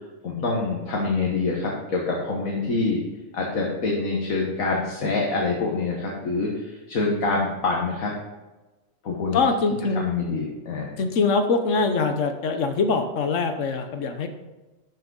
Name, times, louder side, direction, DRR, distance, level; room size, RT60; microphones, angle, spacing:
voice 1, 0.2-3.0 3.3-8.1 9.0-9.4 10.0-11.0, left 3 dB, 85° left, -2 dB, 1.8 m, -26 dB
voice 2, 9.3-10.0 11.0-14.3, left 4 dB, 70° left, 7 dB, 1.3 m, -23 dB
12.5 x 5.9 x 3.9 m, 1.1 s
omnidirectional pair, 1.4 m